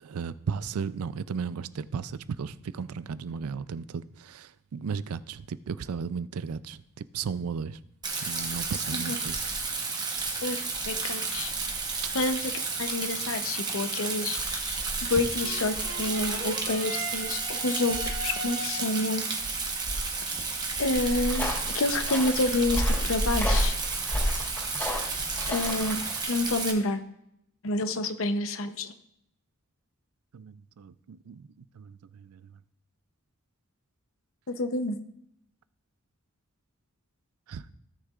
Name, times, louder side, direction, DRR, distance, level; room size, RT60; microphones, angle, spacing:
voice 1, 0.0-6.8 7.1-7.8 8.2-9.4 25.3-25.4 30.3-31.5 31.7-32.4 37.5-37.7, right 6 dB, 85° right, 15 dB, 0.4 m, -35 dB
Rain, 8.0-26.7, right 4 dB, 20° right, 1.0 m, -32 dB
voice 2, 10.9-11.5 12.1-12.5 12.8-19.3 20.8-23.8 25.5-27.0 27.6-28.9 34.5-35.0, left 2 dB, 65° left, 9 dB, 0.8 m, -29 dB
sound 1, 15.3-19.2, right 2 dB, 55° right, 1.8 m, -39 dB
sound 2, 20.9-26.2, equal, 10° left, 2.9 m, -30 dB
17.0 x 6.5 x 2.4 m, 0.77 s
head